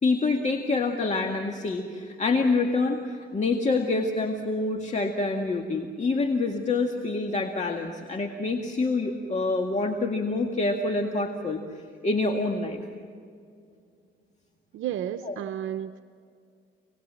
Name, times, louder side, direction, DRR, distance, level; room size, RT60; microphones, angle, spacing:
voice 1, 0.0-12.8 15.2-15.3, left 3 dB, 35° left, 3 dB, 2.0 m, -26 dB
voice 2, 14.7-16.0, right 10 dB, 80° right, 8 dB, 0.8 m, -32 dB
28.0 x 19.5 x 7.6 m, 2.3 s
cardioid pair, 90°, 20 cm